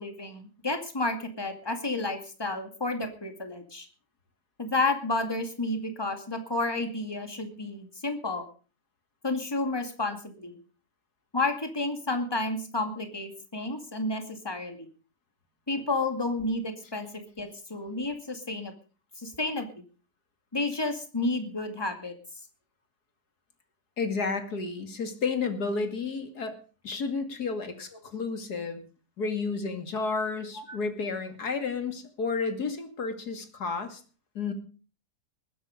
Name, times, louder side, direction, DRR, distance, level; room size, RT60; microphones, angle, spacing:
voice 1, 0.0-3.9 4.6-8.5 9.2-10.6 11.3-14.9 15.7-18.7 19.2-19.7 20.5-22.1 30.7-30.8, left 2 dB, 15° left, 6 dB, 2.3 m, -31 dB
voice 2, 24.0-28.8 29.2-34.0 34.3-34.5, left 4 dB, 80° left, 7 dB, 2.9 m, -31 dB
20.5 x 10.0 x 5.2 m, 0.37 s
omnidirectional pair, 1.7 m